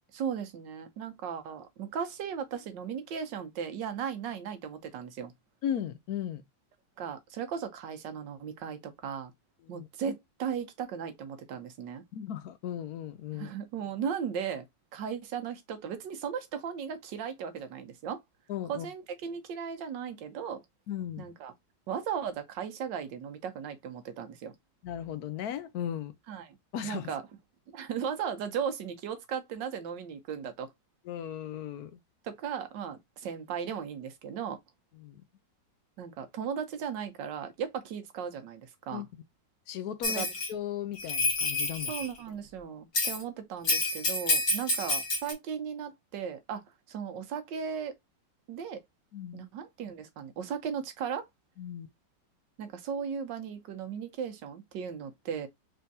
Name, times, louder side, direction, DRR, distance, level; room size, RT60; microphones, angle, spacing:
voice 1, 0.1-5.3 7.0-9.3 9.7-12.0 13.3-14.6 14.9-18.2 18.7-20.6 21.2-21.5 21.9-24.5 26.3-26.6 26.8-27.2 27.7-30.7 32.2-34.6 36.0-39.0 40.2-40.3 41.9-47.9 48.5-48.8 49.3-51.3 52.6-55.5, right 7 dB, 90° right, 1.5 m, -36 dB
voice 2, 5.6-6.4 9.6-9.9 12.1-13.5 18.5-18.9 20.9-21.3 24.8-26.1 26.7-27.1 31.0-32.0 35.0-35.2 38.9-39.1 39.7-41.9 49.1-49.4 51.6-51.9, left 10 dB, 70° left, 1.0 m, -36 dB
Bell, 40.0-40.5 41.0-42.1 42.9-43.2 43.6-45.3, left 2 dB, 40° left, 1.5 m, -28 dB
4.2 x 3.6 x 2.7 m
omnidirectional pair, 1.9 m